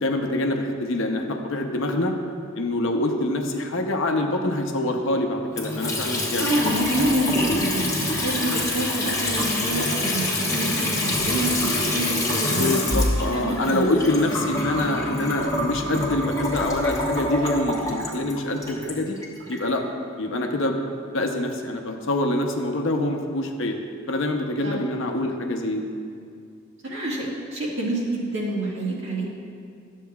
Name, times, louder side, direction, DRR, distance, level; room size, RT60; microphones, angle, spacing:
voice 1, 0.0-2.1 2.5-6.7 12.6-19.2 19.5-19.8 20.2-23.8 24.1-25.9, left 1 dB, 65° left, 3 dB, 0.7 m, -25 dB
Water tap faucet / Sink (filling or washing) / Trickle dribble, 5.5-19.6, left 1 dB, 15° left, 1.2 m, -26 dB
voice 2, 6.4-13.0 13.3-13.9 24.6-24.8 26.8-29.3, right 1 dB, 65° right, -4 dB, 1.7 m, -27 dB
sound 1, 11.1-12.9, equal, 30° right, 1.6 m, -43 dB
12.0 x 7.4 x 2.3 m, 2.3 s
head